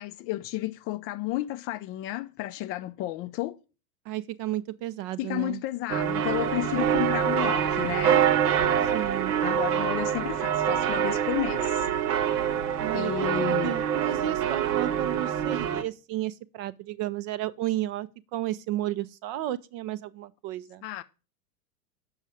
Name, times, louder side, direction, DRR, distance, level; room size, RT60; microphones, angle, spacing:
voice 1, 0.0-3.6 5.2-8.3 9.4-11.9 12.9-13.8 20.8-21.0, left 15 dB, 30° left, 0.4 m, -32 dB
voice 2, 4.1-5.6 8.8-9.3 12.8-20.8, right 14 dB, 40° right, 0.4 m, -33 dB
sound 1, 5.9-15.8, right 9 dB, 75° right, 1.0 m, -25 dB
7.1 x 5.6 x 4.8 m
hypercardioid pair, 105°, 48 cm